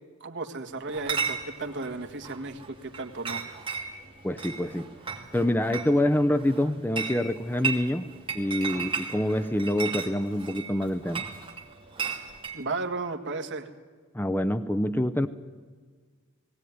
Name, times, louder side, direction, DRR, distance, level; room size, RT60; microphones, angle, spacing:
voice 1, 0.2-3.5 12.5-13.7, right 3 dB, 55° right, 5 dB, 1.8 m, -34 dB
Chatter / Chink clink, 0.9-12.6, right 5 dB, 25° right, 2.4 m, -35 dB
voice 2, 4.2-4.9 5.3-8.1 8.3-11.2 14.1-15.3, left 1 dB, 10° left, 11 dB, 0.6 m, -26 dB
19.5 x 17.0 x 9.5 m, 1.5 s
head